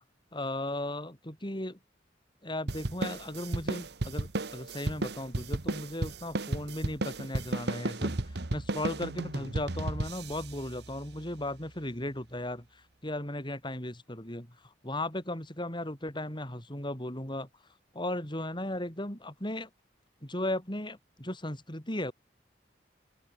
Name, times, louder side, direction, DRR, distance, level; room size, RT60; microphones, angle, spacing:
voice 1, 0.3-1.8 2.4-12.6 13.0-14.5 14.8-17.5 17.9-19.7 20.2-22.1, left 1 dB, 25° left, 7.0 m, -36 dB
sound 1, 2.7-11.5, right 2 dB, 65° right, 1.4 m, -34 dB
open air
head